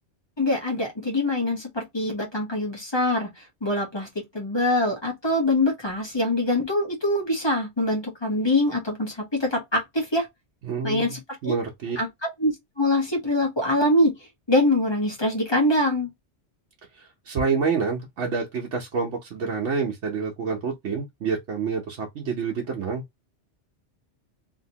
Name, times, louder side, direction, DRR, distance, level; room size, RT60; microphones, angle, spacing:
voice 1, 0.4-10.3 10.8-11.5 12.0-14.1 14.5-16.1, left 1 dB, 25° left, 1.0 m, -24 dB
voice 2, 10.6-12.0 16.9-23.0, right 5 dB, 80° right, 1.0 m, -28 dB
2.8 x 2.8 x 2.7 m
omnidirectional pair, 1.2 m